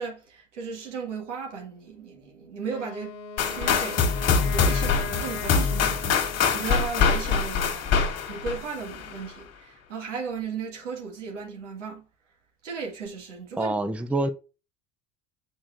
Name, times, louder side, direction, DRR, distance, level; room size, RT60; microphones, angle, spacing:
voice 1, 0.0-3.2 3.4-12.1 12.6-13.7, right 5 dB, 85° right, 1.9 m, -36 dB
Wind instrument woodwind instrument, 2.6-6.8, left 5 dB, 80° left, 1.1 m, -38 dB
sound 1, 3.4-9.2, left 6 dB, 45° left, 1.7 m, -24 dB
voice 2, 13.6-14.3, right 2 dB, 5° right, 0.6 m, -26 dB
7.2 x 5.1 x 2.5 m
hypercardioid pair, 70°, 35 cm